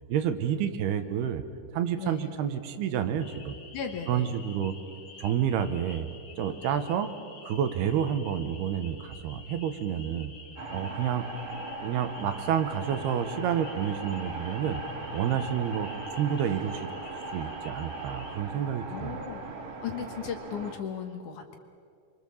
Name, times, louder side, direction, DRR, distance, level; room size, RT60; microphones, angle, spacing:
voice 1, 0.1-1.4 1.7-3.6 4.1-4.7 5.2-6.1 6.4-7.1 7.4-10.3 10.7-11.2 11.8-14.8 15.1-16.9 17.3-19.2, right 9 dB, 85° right, 9 dB, 3.2 m, -29 dB
sound 1, 3.2-18.4, left 4 dB, 40° left, 2.4 m, -50 dB
voice 2, 3.7-4.4 18.9-19.5 19.8-21.6, left 7 dB, 60° left, 4 dB, 2.5 m, -36 dB
sound 2, 10.6-20.7, right 2 dB, 60° right, 3.5 m, -39 dB
28.5 x 24.0 x 7.2 m, 2.3 s
omnidirectional pair, 4.5 m